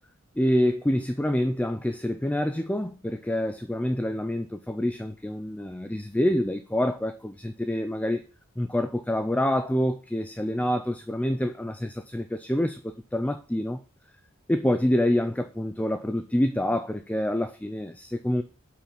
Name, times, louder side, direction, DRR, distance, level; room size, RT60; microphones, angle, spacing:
voice 1, 0.4-8.2 8.6-13.8 14.5-18.4, left 1 dB, 5° left, 0.4 m, -27 dB
5.8 x 5.8 x 7.0 m
head